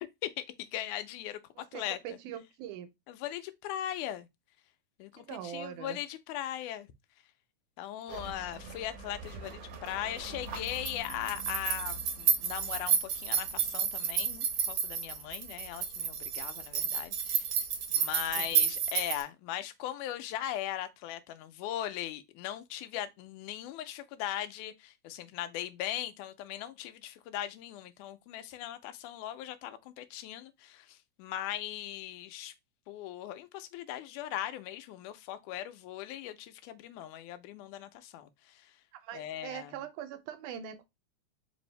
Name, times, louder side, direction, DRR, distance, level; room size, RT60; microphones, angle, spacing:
voice 1, 0.2-2.2 3.1-4.3 5.0-6.9 7.8-17.5 18.0-32.5 32.9-38.7 39.1-39.8, left 12 dB, 85° left, 2.0 m, -39 dB
voice 2, 1.6-2.9 5.2-6.0 18.4-18.5 38.9-40.8, right 10 dB, 85° right, 2.2 m, -42 dB
sound 1, 8.1-19.2, right 7 dB, 70° right, 1.6 m, -32 dB
4.9 x 2.6 x 3.1 m
omnidirectional pair, 3.5 m